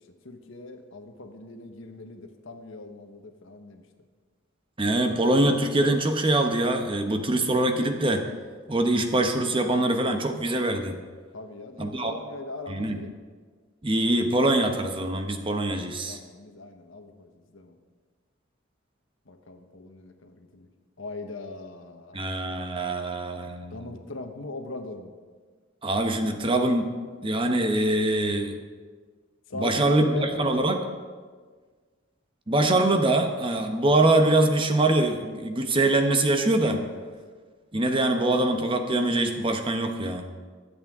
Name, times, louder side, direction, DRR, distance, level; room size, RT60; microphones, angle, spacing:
voice 1, 0.2-3.8 11.3-13.1 16.1-17.8 19.3-20.7 21.0-22.2 23.7-25.1 29.5-30.5 36.7-37.0, left 2 dB, 70° left, 5 dB, 1.2 m, -39 dB
voice 2, 4.8-8.2 8.7-11.0 11.8-12.1 12.7-13.0 13.8-16.2 22.1-23.9 25.8-26.9 27.2-28.5 29.5-30.8 32.5-36.8 37.7-40.3, right 2 dB, 25° right, 5 dB, 0.9 m, -23 dB
22.0 x 8.1 x 3.7 m, 1.5 s
head